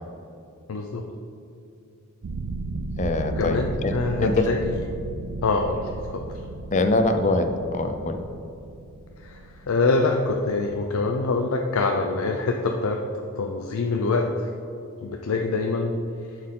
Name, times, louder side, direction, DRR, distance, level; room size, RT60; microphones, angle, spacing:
voice 1, 0.7-1.0 3.4-4.7 5.4-6.2 9.2-9.4 9.7-13.0 13.4-14.5 15.0-15.9, left 3 dB, 85° left, 3 dB, 0.5 m, -25 dB
sound 1, 2.2-10.6, right 3 dB, 90° right, 0.4 m, -35 dB
voice 2, 3.0-4.5 6.7-8.2, left 2 dB, 35° left, 7 dB, 0.5 m, -23 dB
11.0 x 4.4 x 3.7 m, 2.6 s
head